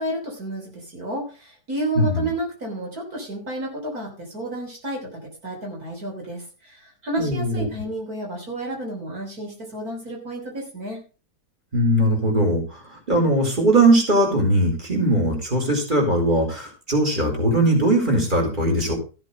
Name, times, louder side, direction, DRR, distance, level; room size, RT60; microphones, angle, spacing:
voice 1, 0.0-11.0, right 1 dB, 70° right, 0 dB, 3.9 m, -31 dB
voice 2, 2.0-2.3 7.2-7.7 11.7-18.9, right 1 dB, 30° right, 1 dB, 4.7 m, -20 dB
15.0 x 7.7 x 5.1 m, 0.35 s
omnidirectional pair, 1.7 m